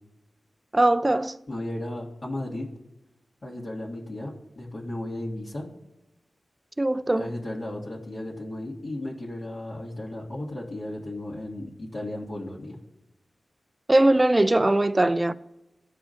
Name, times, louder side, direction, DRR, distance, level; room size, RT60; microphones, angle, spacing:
voice 1, 0.7-1.4 6.8-7.3 13.9-15.3, right 1 dB, 25° right, 0.3 m, -21 dB
voice 2, 1.5-2.7 3.4-5.6 7.1-12.8, left 1 dB, 60° left, 1.6 m, -35 dB
13.5 x 4.9 x 2.5 m
cardioid pair, 45°, 0 cm